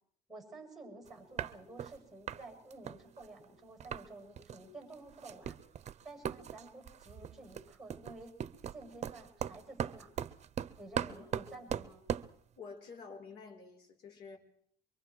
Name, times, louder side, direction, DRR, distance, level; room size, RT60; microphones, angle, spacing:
voice 1, 0.3-5.6 6.0-8.3 8.7-10.1 10.8-12.0, right 2 dB, ahead, 3 dB, 7.6 m, -51 dB
sound 1, 1.1-1.2 1.4-2.0 2.3-2.4 2.7-4.1 4.4-4.6 4.9-12.3, right 9 dB, 40° right, 0.8 m, -39 dB
voice 2, 12.6-14.4, left 5 dB, 70° left, 2 dB, 4.8 m, -49 dB
25.0 x 24.0 x 4.8 m, 0.66 s
cardioid pair, 110°, 17 cm